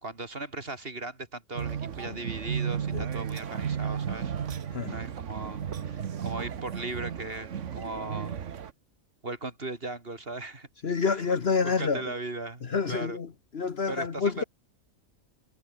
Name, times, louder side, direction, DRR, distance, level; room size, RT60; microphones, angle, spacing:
voice 1, 0.0-4.3 4.9-8.4 9.2-10.7 11.6-13.2 13.9-14.4, right 2 dB, 40° right, 3.0 m, -38 dB
sound 1, 1.6-8.7, right 8 dB, 60° right, 1.4 m, -34 dB
voice 2, 10.8-12.0 12.6-13.3 13.5-14.4, left 5 dB, 50° left, 1.4 m, -28 dB
omnidirectional pair, 1.5 m